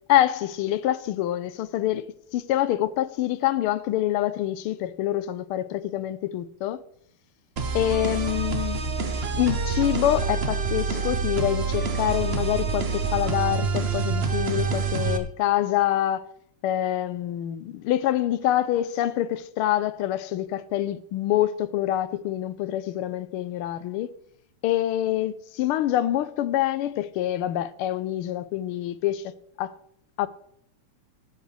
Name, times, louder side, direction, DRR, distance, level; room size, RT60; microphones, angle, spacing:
voice 1, 0.1-2.1 2.3-6.8 7.7-8.8 9.3-16.3 16.6-24.1 24.6-29.3 29.6-29.8 30.2-30.3, left 13 dB, 90° left, 1.5 m, -26 dB
sound 1, 7.6-15.2, right 5 dB, 65° right, 0.6 m, -27 dB
17.5 x 7.9 x 3.4 m
omnidirectional pair, 2.4 m